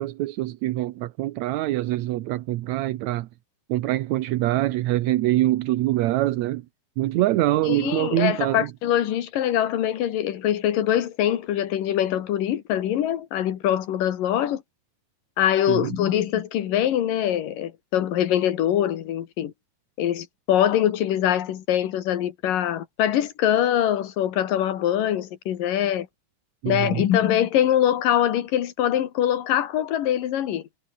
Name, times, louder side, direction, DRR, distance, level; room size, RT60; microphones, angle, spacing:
voice 1, 0.0-3.3 3.7-6.7 7.0-8.7 15.7-15.9 26.6-27.0, right 16 dB, 70° right, 1.9 m, -24 dB
voice 2, 7.7-14.6 15.4-19.5 20.0-26.1 26.7-30.6, left 11 dB, 85° left, 3.3 m, -23 dB
omnidirectional pair, 3.8 m